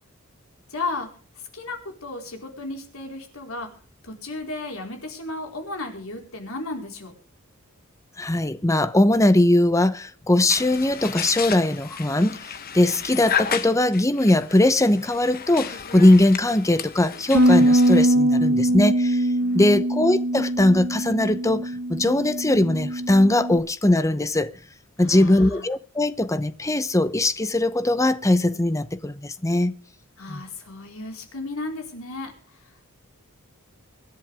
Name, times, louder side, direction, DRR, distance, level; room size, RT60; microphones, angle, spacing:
voice 1, 0.7-1.1 1.3-3.7 4.0-7.1 19.4-19.7 25.0-25.6 30.2-32.8, left 2 dB, 75° left, 4.4 m, -34 dB
voice 2, 8.2-19.3 19.5-24.5 25.0-29.7 30.3-30.4, left 1 dB, 15° left, 0.8 m, -20 dB
sound 1, 10.5-18.0, left 7 dB, 45° left, 1.1 m, -33 dB
Bass guitar, 17.3-23.6, right 1 dB, 60° right, 1.5 m, -22 dB
25.0 x 10.5 x 3.5 m
head